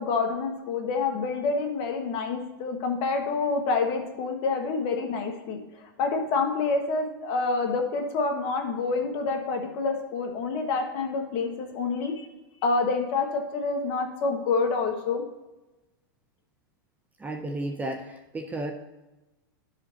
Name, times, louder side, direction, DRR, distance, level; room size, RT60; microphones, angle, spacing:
voice 1, 0.0-12.3 12.6-15.2, left 4 dB, 45° left, 3 dB, 1.6 m, -27 dB
voice 2, 17.2-18.7, right 1 dB, 15° right, 5 dB, 0.7 m, -33 dB
13.0 x 5.1 x 2.9 m, 1.1 s
hypercardioid pair, 125°, 12 cm